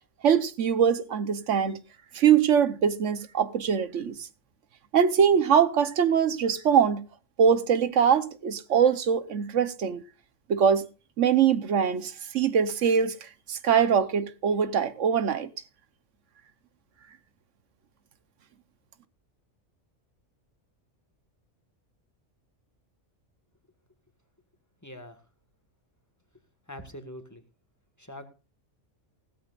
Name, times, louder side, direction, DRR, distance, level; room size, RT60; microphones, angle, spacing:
voice 1, 0.2-1.8 2.1-4.2 4.9-7.0 7.4-10.0 10.5-10.9 11.2-13.2 13.5-15.5, right 7 dB, 80° right, 1.3 m, -23 dB
voice 2, 24.8-25.2 26.7-27.4 28.0-28.3, left 1 dB, 15° left, 1.6 m, -43 dB
16.5 x 13.5 x 2.5 m
omnidirectional pair, 1.3 m